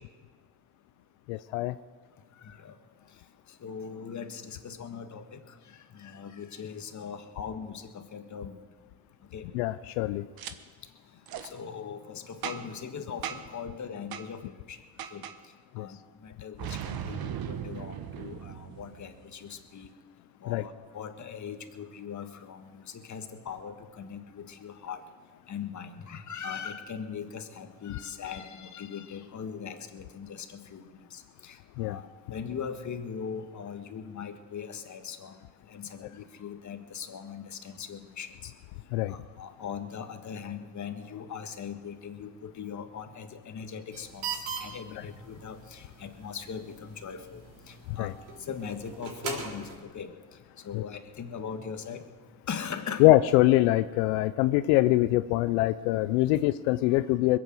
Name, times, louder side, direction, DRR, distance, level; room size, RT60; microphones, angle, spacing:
voice 1, 1.3-1.7 9.5-10.3 15.8-15.9 20.5-20.6 31.8-32.0 38.9-39.1 47.9-48.1 50.7-50.8 53.0-57.4, left 17 dB, 90° left, 13 dB, 0.6 m, -24 dB
voice 2, 2.4-2.7 3.6-5.4 5.9-8.5 9.3-9.4 11.4-14.4 14.7-14.8 15.1-15.2 15.8-19.9 20.4-25.0 25.5-30.8 31.1-35.4 35.7-38.5 39.1-47.4 47.7-48.1 48.4-50.1 50.6-52.0 52.5-53.1, left 7 dB, 40° left, 7 dB, 1.7 m, -40 dB
Boom, 10.4-10.5 11.3-11.5 12.4-12.8 13.2-13.6 14.1-14.3 15.0-15.4 16.6-19.3, right 8 dB, 55° right, 1.3 m, -38 dB
sound 1, 43.9-49.8, right 5 dB, 70° right, 4.3 m, -41 dB
21.0 x 8.6 x 7.8 m, 1.5 s
supercardioid pair, 85°, 44 cm